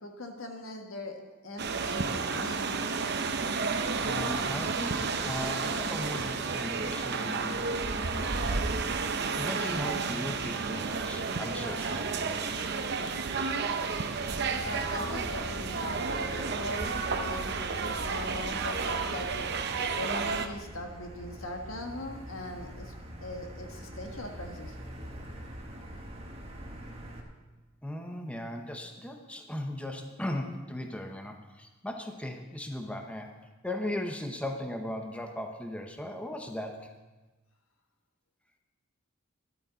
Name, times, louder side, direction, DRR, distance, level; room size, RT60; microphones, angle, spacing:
voice 1, 0.0-1.2 1.4-2.8 14.6-19.5 20.0-22.9 23.2-24.7, left 1 dB, 90° left, 3 dB, 1.7 m, -40 dB
sound 1, 1.6-20.5, right 4 dB, 55° right, 0.8 m, -31 dB
voice 2, 4.0-9.1 9.3-12.5 27.8-33.3 33.6-36.9, left 1 dB, 5° left, 4 dB, 0.8 m, -38 dB
Motor vehicle (road), 14.2-27.2, equal, 30° right, 1.5 m, -44 dB
13.0 x 12.0 x 4.0 m, 1.2 s
head